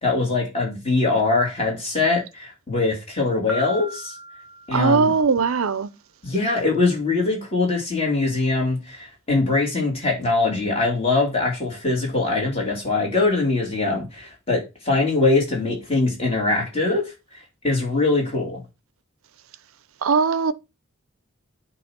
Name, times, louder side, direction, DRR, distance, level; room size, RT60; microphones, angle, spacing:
voice 1, 0.0-4.1 4.7-5.1 6.2-17.0 17.6-18.6, left 3 dB, 30° left, 2.8 m, -22 dB
Piano, 3.5-5.4, equal, ahead, 1.4 m, -36 dB
voice 2, 4.7-5.9 20.0-20.5, right 5 dB, 80° right, 0.6 m, -19 dB
8.8 x 3.0 x 6.0 m
head